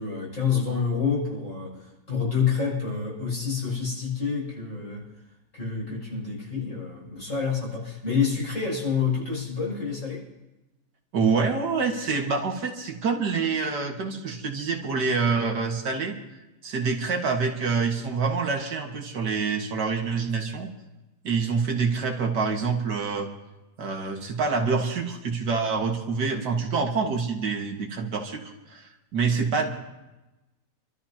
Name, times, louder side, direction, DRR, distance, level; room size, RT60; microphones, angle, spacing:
voice 1, 0.0-5.1 5.5-10.2, left 6 dB, 50° left, -5 dB, 6.9 m, -28 dB
voice 2, 11.1-16.2 16.6-20.7 21.2-23.3 23.8-29.7, right 5 dB, 80° right, 2 dB, 2.2 m, -26 dB
28.0 x 13.0 x 2.9 m, 1.0 s
omnidirectional pair, 1.8 m